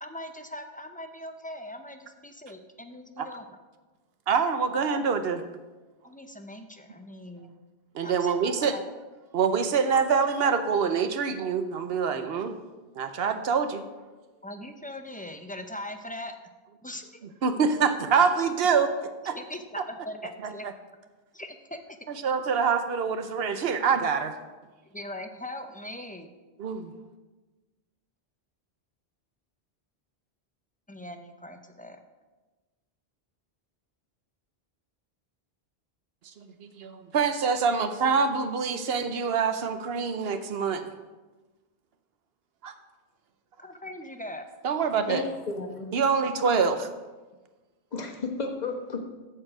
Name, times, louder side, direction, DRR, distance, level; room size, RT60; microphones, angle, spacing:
voice 1, 0.0-3.4 6.0-7.5 8.0-8.3 8.6-8.8 14.4-16.3 16.8-17.0 19.3-20.7 21.3-21.8 24.9-26.3 30.9-32.0 43.6-44.4, left 1 dB, 10° left, 6 dB, 0.5 m, -40 dB
voice 2, 4.3-5.4 7.9-8.8 9.3-12.5 12.9-13.8 17.4-19.4 20.4-20.7 22.1-24.4 26.6-26.9 36.4-40.8 42.6-42.7 44.6-45.2 45.9-46.9, right 5 dB, 75° right, 9 dB, 0.9 m, -25 dB
voice 3, 45.1-45.9 47.9-49.0, left 3 dB, 45° left, 2 dB, 1.2 m, -32 dB
14.0 x 4.6 x 4.9 m, 1.2 s
omnidirectional pair, 1.1 m